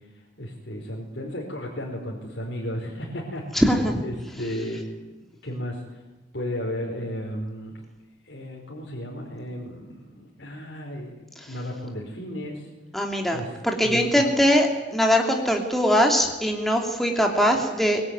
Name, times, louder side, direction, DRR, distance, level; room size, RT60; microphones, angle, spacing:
voice 1, 0.4-3.4 4.0-4.9 5.4-6.0 6.3-7.7 8.2-12.7 13.3-13.5 13.8-14.3, equal, 65° left, -2 dB, 4.9 m, -34 dB
voice 2, 3.5-4.0 12.9-18.0, equal, ahead, 2 dB, 3.0 m, -21 dB
24.0 x 21.5 x 9.6 m, 1.1 s
head